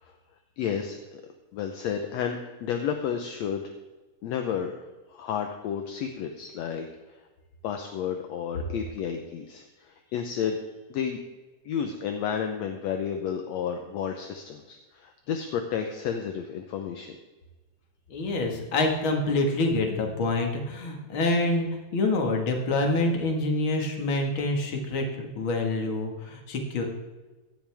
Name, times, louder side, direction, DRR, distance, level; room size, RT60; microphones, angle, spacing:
voice 1, 0.6-1.2 1.5-3.6 4.2-4.8 5.1-6.9 7.6-10.6 10.9-11.2 11.7-17.2, left 7 dB, 70° left, 5 dB, 1.8 m, -31 dB
voice 2, 18.1-21.7 21.9-26.8, left 2 dB, 45° left, 2 dB, 2.2 m, -26 dB
16.5 x 12.5 x 3.5 m, 1.2 s
omnidirectional pair, 3.9 m